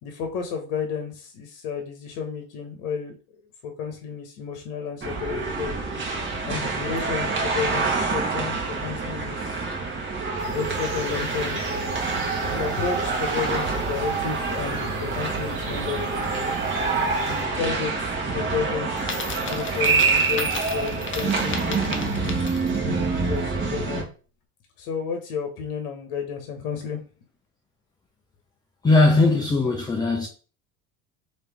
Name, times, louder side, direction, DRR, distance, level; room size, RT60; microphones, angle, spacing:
voice 1, 0.0-3.2 3.6-5.7 6.4-9.6 10.4-11.6 12.4-16.3 17.1-22.3 22.8-24.1 24.8-27.1, left 6 dB, 55° left, 1.0 m, -32 dB
sound 1, 5.0-24.0, right 4 dB, 25° right, 1.3 m, -26 dB
sound 2, 10.4-17.4, right 4 dB, 70° right, 1.1 m, -40 dB
Coin (dropping), 19.0-22.9, left 5 dB, 30° left, 0.8 m, -35 dB
voice 2, 28.8-30.3, left 2 dB, 10° left, 0.4 m, -19 dB
3.3 x 2.8 x 3.3 m
hypercardioid pair, 85°, 43 cm